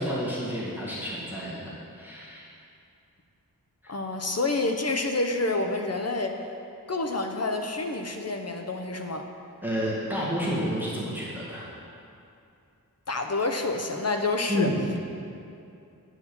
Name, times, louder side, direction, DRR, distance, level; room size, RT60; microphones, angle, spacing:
voice 1, 0.0-2.5 3.8-3.9 9.6-11.6 14.5-14.9, equal, 5° right, -7 dB, 1.8 m, -30 dB
voice 2, 3.9-6.4 6.9-9.3 13.1-14.7, left 2 dB, 45° left, 4 dB, 0.8 m, -28 dB
9.8 x 4.8 x 6.9 m, 2.5 s
wide cardioid pair, 80°, 35 cm